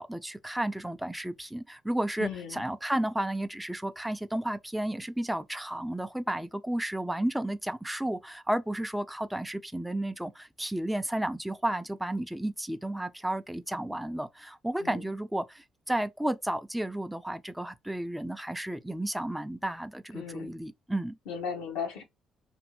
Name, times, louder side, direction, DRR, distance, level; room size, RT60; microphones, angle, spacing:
voice 1, 0.0-21.2, right 1 dB, 5° right, 0.3 m, -32 dB
voice 2, 2.2-2.7 14.8-15.0 20.1-20.5 21.3-22.0, left 7 dB, 80° left, 0.8 m, -36 dB
2.6 x 2.6 x 3.0 m
hypercardioid pair, 50°, 0 cm